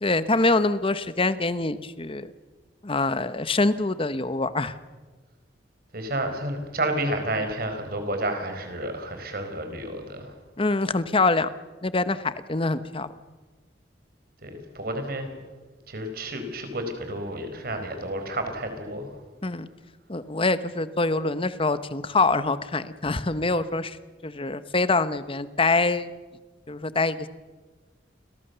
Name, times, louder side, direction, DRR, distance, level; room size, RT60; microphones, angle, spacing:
voice 1, 0.0-2.3 2.8-4.7 10.6-11.5 11.8-13.1 19.4-19.7 20.1-24.0 24.2-26.1 26.7-27.3, left 3 dB, 30° left, 13 dB, 1.0 m, -25 dB
voice 2, 5.9-10.3 14.4-15.3 15.9-19.1, right 1 dB, 55° right, 6 dB, 4.9 m, -30 dB
29.5 x 23.0 x 7.0 m, 1.4 s
head